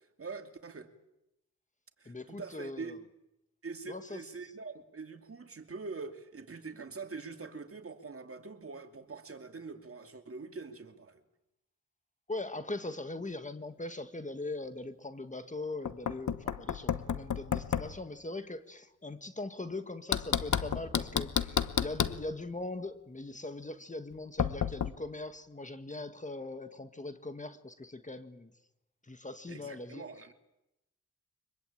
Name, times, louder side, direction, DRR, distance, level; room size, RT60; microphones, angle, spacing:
voice 1, 0.2-0.9 2.0-3.0 3.6-11.2 29.5-30.3, right 4 dB, 45° right, 2.7 m, -44 dB
voice 2, 2.0-3.0 3.9-4.5 12.3-28.5 29.0-30.0, left 2 dB, 25° left, 1.7 m, -41 dB
Knock, 15.8-18.0 20.1-22.2 24.4-24.9, left 8 dB, 70° left, 1.1 m, -31 dB
sound 1, 20.3-23.0, left 1 dB, 5° left, 6.5 m, -53 dB
24.5 x 22.5 x 8.8 m
cardioid pair, 60°, 31 cm